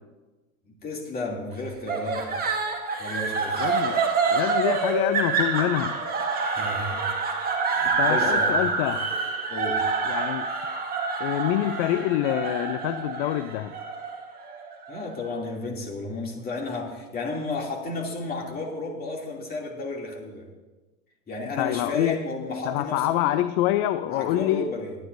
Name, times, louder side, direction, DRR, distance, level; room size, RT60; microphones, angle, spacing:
voice 1, 0.7-2.3 3.0-3.8 6.4-7.0 7.7-8.6 9.5-9.8 14.9-20.5 21.3-23.4 24.1-25.0, left 2 dB, 20° left, -1 dB, 2.7 m, -33 dB
sound 1, 1.9-15.0, right 4 dB, 20° right, 1.9 m, -27 dB
voice 2, 3.6-4.0 4.3-6.0 8.0-9.1 10.1-10.5 11.2-13.7 21.6-22.2 22.6-24.7, left 13 dB, 40° left, 12 dB, 0.6 m, -26 dB
22.0 x 9.8 x 2.6 m, 1.2 s
hypercardioid pair, 115°, 43 cm